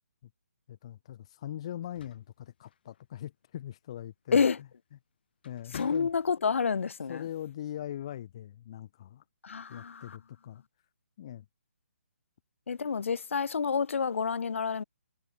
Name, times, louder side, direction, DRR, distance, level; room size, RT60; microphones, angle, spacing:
voice 1, 0.7-4.4 5.4-6.1 7.1-9.2 9.7-10.6 11.2-11.5, left 11 dB, 25° left, 0.5 m, -41 dB
sound 1, 1.7-3.3 4.7-5.0 5.4-6.6, left 8 dB, 40° left, 2.7 m, -48 dB
voice 2, 5.7-7.2 9.4-10.2 12.7-14.8, left 6 dB, 60° left, 0.8 m, -29 dB
hypercardioid pair, 170°, 8 cm